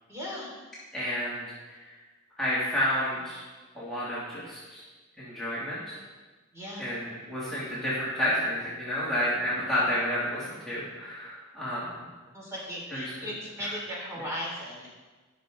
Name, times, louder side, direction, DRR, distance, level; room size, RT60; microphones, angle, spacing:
voice 1, 0.1-0.5 6.5-6.8 12.3-14.9, equal, 15° right, -4 dB, 3.3 m, -37 dB
voice 2, 0.9-1.8 2.4-3.4 3.7-4.8 5.2-6.0 6.8-11.8 12.9-13.3 13.6-13.7, equal, ahead, -11 dB, 2.6 m, -30 dB
19.0 x 6.6 x 3.9 m, 1.3 s
head